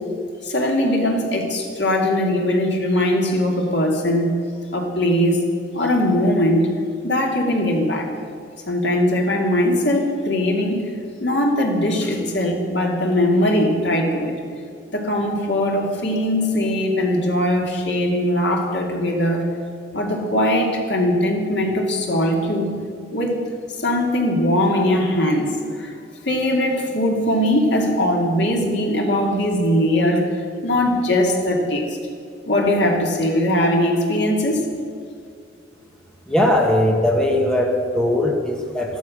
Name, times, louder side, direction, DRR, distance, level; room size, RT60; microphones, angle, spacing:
voice 1, 0.4-4.3 4.7-5.4 5.7-6.7 7.0-8.1 8.7-10.9 11.2-14.3 14.9-19.5 19.9-22.7 23.1-23.4 23.8-25.9 26.2-30.3 30.6-32.0 32.5-34.7, left 1 dB, 70° left, 1 dB, 2.6 m, -20 dB
voice 2, 36.3-39.0, left 1 dB, 5° left, 0 dB, 1.5 m, -19 dB
14.0 x 12.5 x 6.3 m, 2.3 s
head